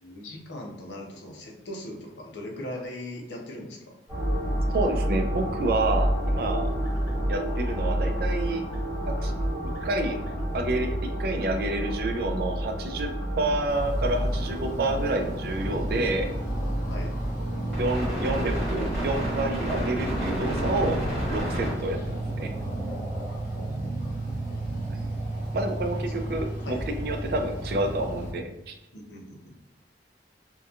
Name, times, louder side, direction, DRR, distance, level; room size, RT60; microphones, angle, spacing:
voice 1, 0.0-3.8 16.9-17.1 23.5-24.0 24.3-24.6 26.1-26.2 26.6-26.8 28.9-29.5, left 1 dB, 80° left, 0 dB, 0.6 m, -39 dB
sound 1, 4.1-22.2, equal, 5° left, 1.4 m, -29 dB
voice 2, 4.7-6.7 7.3-8.6 9.2-9.3 9.8-10.2 10.5-13.1 13.4-16.3 17.8-21.0 21.3-22.5 24.9-25.0 25.5-28.7, right 2 dB, 55° right, 4 dB, 0.3 m, -29 dB
sound 2, 6.8-23.5, left 1 dB, 25° left, 1.2 m, -52 dB
sound 3, 13.7-28.3, right 1 dB, 45° left, 0.7 m, -33 dB
2.8 x 2.2 x 2.4 m, 0.90 s
head